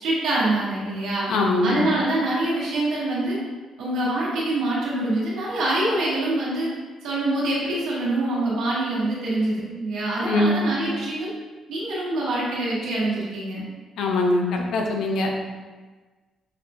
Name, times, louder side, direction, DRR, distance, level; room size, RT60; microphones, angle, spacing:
voice 1, 0.0-1.3 1.6-3.4 3.8-6.7 7.0-11.3 11.7-13.6, right 2 dB, 85° right, -7 dB, 1.3 m, -25 dB
voice 2, 1.3-1.9 10.2-10.7 14.0-15.3, left 2 dB, 80° left, 1 dB, 0.6 m, -22 dB
5.8 x 2.2 x 2.6 m, 1.3 s
cardioid pair, 90°, 0 cm